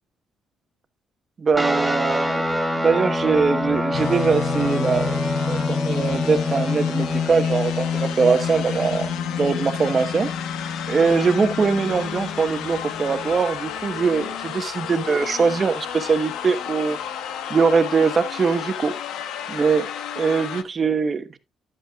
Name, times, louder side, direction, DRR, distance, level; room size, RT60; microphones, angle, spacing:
voice 1, 1.4-5.2 5.5-9.1 9.4-10.3 10.9-17.0 17.5-18.9 19.5-19.9 20.2-21.4, right 5 dB, 40° right, 1.1 m, -22 dB
sound 1, 1.5-13.3, left 2 dB, ahead, 2.1 m, -27 dB
sound 2, 3.9-20.6, left 8 dB, 85° left, 0.9 m, -31 dB
11.0 x 8.3 x 2.4 m
cardioid pair, 90°, 0 cm